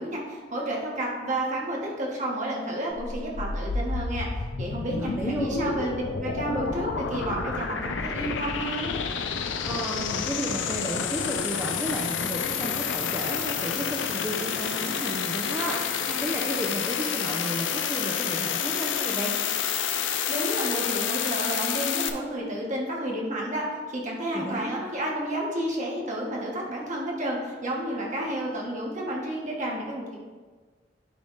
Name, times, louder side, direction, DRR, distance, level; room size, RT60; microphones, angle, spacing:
voice 1, 0.0-8.9 20.3-30.2, right 1 dB, 40° right, -2 dB, 1.4 m, -31 dB
sound 1, 2.9-22.1, left 6 dB, 75° left, 0.5 m, -29 dB
voice 2, 5.0-5.7 9.6-19.3 24.3-25.0, right 1 dB, 10° right, -4 dB, 0.6 m, -33 dB
9.7 x 3.4 x 4.1 m, 1.4 s
head